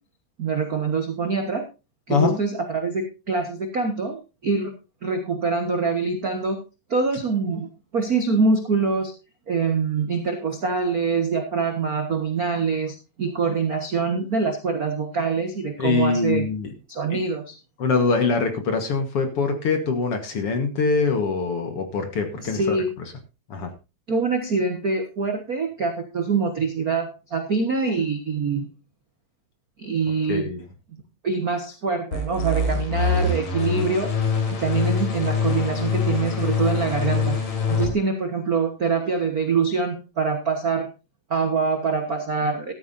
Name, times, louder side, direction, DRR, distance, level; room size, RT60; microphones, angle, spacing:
voice 1, 0.4-1.6 2.1-4.7 5.0-6.6 6.9-9.1 9.5-16.5 16.9-17.6 22.4-22.9 24.1-28.7 29.8-30.5 31.2-34.1 34.6-37.4 37.7-40.9 41.3-42.7, right 4 dB, 60° right, 5 dB, 0.9 m, -24 dB
voice 2, 15.8-16.7 17.1-17.2 17.8-22.8 23.5-23.7 30.3-30.6, left 4 dB, 50° left, 6 dB, 2.0 m, -23 dB
sound 1, 32.1-37.9, left 4 dB, 75° left, 4.8 m, -24 dB
14.0 x 12.5 x 2.7 m, 0.27 s
omnidirectional pair, 3.9 m